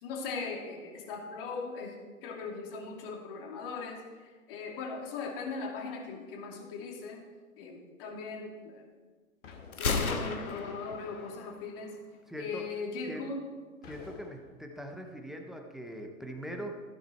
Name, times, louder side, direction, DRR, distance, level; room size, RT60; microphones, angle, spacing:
voice 1, 0.0-2.0 2.2-7.2 7.6-8.8 9.8-11.9 12.4-13.4, left 4 dB, 40° left, 1 dB, 2.6 m, -39 dB
sound 1, 9.4-10.7 13.8-14.8, left 5 dB, 60° left, 2.4 m, -52 dB
Gunshot gunfire, 9.7-11.7, left 4 dB, 85° left, 1.4 m, -33 dB
voice 2, 12.3-12.6 13.1-13.3 13.8-16.8, equal, ahead, 3 dB, 0.5 m, -41 dB
13.5 x 10.5 x 4.4 m, 1.4 s
hypercardioid pair, 125°, 42 cm